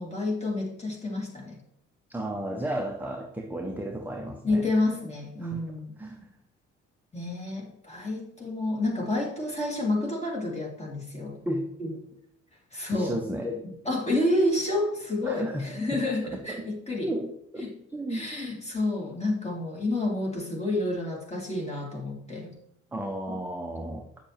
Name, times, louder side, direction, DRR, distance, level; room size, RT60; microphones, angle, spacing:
voice 1, 0.0-1.6 2.5-2.6 4.4-5.9 7.1-11.4 11.8-11.9 12.7-17.1 17.6-17.7 18.1-22.5, left 2 dB, 15° left, -2 dB, 2.3 m, -29 dB
voice 2, 2.1-4.6 5.4-5.6 6.0-6.3 11.5-11.7 12.9-13.5 15.2-15.6 15.9-16.0 16.3-16.6 17.0-17.7 17.9-18.2 22.9-24.0, right 1 dB, 5° right, 1 dB, 0.9 m, -33 dB
7.4 x 6.6 x 3.0 m, 0.71 s
figure-of-eight pair, 50°, 37 cm